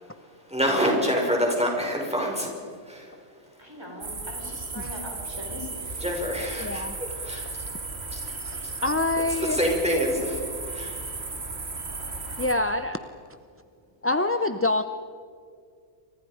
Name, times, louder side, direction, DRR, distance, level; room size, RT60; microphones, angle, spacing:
voice 1, 0.5-2.5 2.9-3.1 6.0-7.5 8.1-8.2 9.5-10.4 10.7-10.9, equal, 5° right, 5.6 m, -26 dB
voice 2, 3.6-6.2 9.6-9.7, equal, 20° right, 4.2 m, -41 dB
sound 1, 4.0-12.5, right 3 dB, 60° right, 2.3 m, -35 dB
voice 3, 6.6-7.0 8.3-9.6 12.4-13.0 14.0-14.8, left 2 dB, 15° left, 0.5 m, -26 dB
29.5 x 24.5 x 5.1 m
omnidirectional pair, 1.3 m